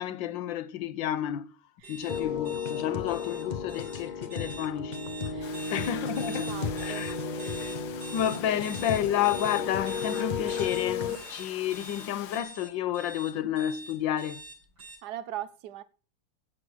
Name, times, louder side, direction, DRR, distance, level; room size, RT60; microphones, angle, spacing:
voice 1, 0.0-1.5 1.9-5.0 5.7-6.5 6.8-7.1 8.1-14.4, left 11 dB, 80° left, 1.5 m, -30 dB
sound 1, 1.8-14.9, right 2 dB, 80° right, 8.2 m, -44 dB
sound 2, 2.1-11.2, left 5 dB, 40° left, 0.6 m, -34 dB
voice 2, 5.3-5.6 6.3-7.1 8.3-8.4 15.0-15.8, right 11 dB, 65° right, 1.3 m, -40 dB
Domestic sounds home sounds, 5.4-12.4, left 9 dB, 65° left, 1.4 m, -44 dB
16.0 x 6.6 x 6.0 m
omnidirectional pair, 2.1 m